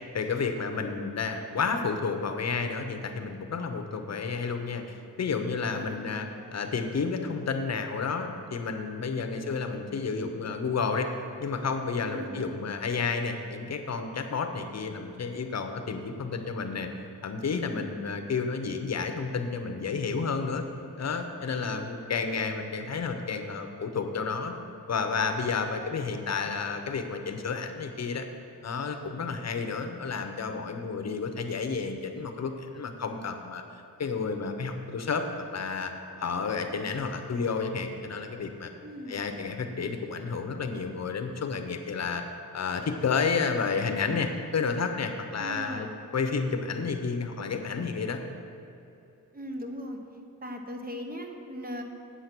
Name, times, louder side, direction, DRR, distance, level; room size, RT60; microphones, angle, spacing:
voice 1, 0.1-6.3 6.5-11.1 11.4-16.9 17.2-20.6 21.0-24.5 24.9-28.3 28.6-33.6 34.0-35.2 35.5-35.9 36.2-38.7 39.1-42.2 42.5-45.9 46.1-48.2, left 5 dB, 50° left, 6 dB, 0.8 m, -31 dB
voice 2, 5.6-6.2 9.4-9.6 12.0-12.5 17.7-18.0 21.6-21.9 25.7-26.2 38.8-39.2 45.4-46.0 49.3-50.0 50.4-51.8, equal, 25° right, 3 dB, 0.9 m, -40 dB
8.0 x 7.9 x 6.0 m, 2.7 s
wide cardioid pair, 135°, 35 cm